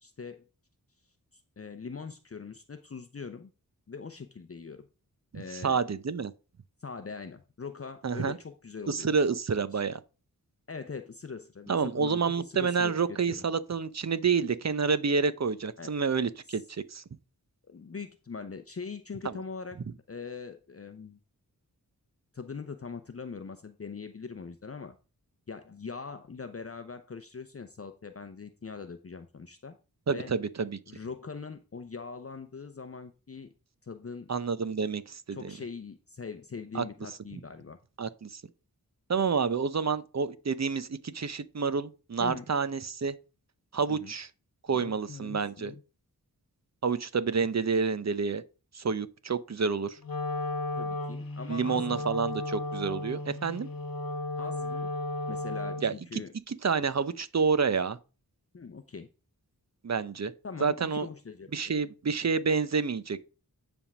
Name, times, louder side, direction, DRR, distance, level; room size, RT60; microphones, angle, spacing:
voice 1, 0.0-0.4 1.6-3.5 3.9-4.9 5.3-5.8 6.8-9.2 10.7-13.4 15.8-15.9 17.7-19.8 20.1-21.2 22.3-24.9 25.5-29.7 30.1-30.3 30.9-33.5 33.8-34.3 35.3-37.8 42.2-42.4 43.9-44.1 44.7-45.8 50.8-52.1 54.4-54.9 55.3-56.3 58.5-59.1 60.4-61.7, left 5 dB, 40° left, 0.7 m, -42 dB
voice 2, 5.3-6.3 8.0-8.4 8.9-10.0 11.7-17.0 19.2-19.3 30.1-30.8 34.3-35.4 36.7-36.8 38.0-38.4 39.1-43.1 43.7-44.3 44.7-45.7 46.8-48.4 48.7-50.0 51.5-53.7 55.8-55.9 56.5-58.0 59.8-60.3 60.6-61.1 61.5-63.2, right 5 dB, 45° right, 0.7 m, -29 dB
Wind instrument woodwind instrument, 50.0-56.0, left 2 dB, 65° left, 1.1 m, -34 dB
9.6 x 3.6 x 6.0 m
wide cardioid pair, 75°, 37 cm